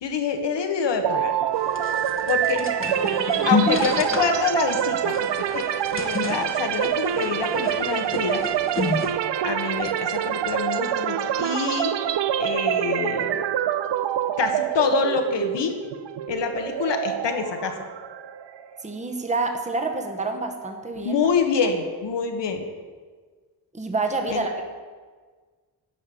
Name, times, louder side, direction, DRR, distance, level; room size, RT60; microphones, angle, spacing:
voice 1, 0.0-1.3 2.3-2.6 3.4-5.7 5.9-8.4 9.4-11.9 12.4-13.4 14.4-15.8 16.3-17.7 21.0-22.6 24.3-24.4, left 5 dB, 85° left, 5 dB, 1.4 m, -26 dB
sound 1, 1.0-18.8, right 10 dB, 85° right, 0.6 m, -26 dB
sound 2, 1.5-9.1, left 4 dB, 30° left, 1.0 m, -30 dB
voice 2, 18.8-21.3 23.7-24.6, right 3 dB, 15° right, 4 dB, 1.0 m, -28 dB
11.5 x 5.3 x 8.4 m, 1.5 s
wide cardioid pair, 170°, 42 cm